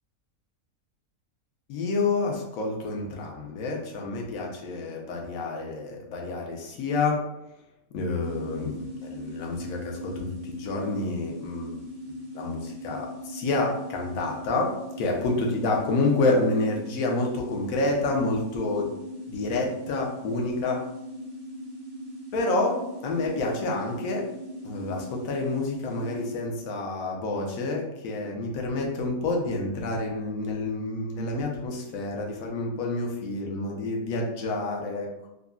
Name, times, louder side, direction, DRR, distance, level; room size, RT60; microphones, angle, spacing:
voice 1, 1.7-7.2 7.9-11.8 12.1-14.7 15.0-18.9 19.3-20.8 22.3-24.2 24.6-35.3, left 2 dB, 70° left, 0 dB, 1.0 m, -28 dB
sound 1, 8.2-26.3, equal, 75° right, 1.2 m, -40 dB
3.7 x 2.0 x 2.3 m, 0.88 s
omnidirectional pair, 1.6 m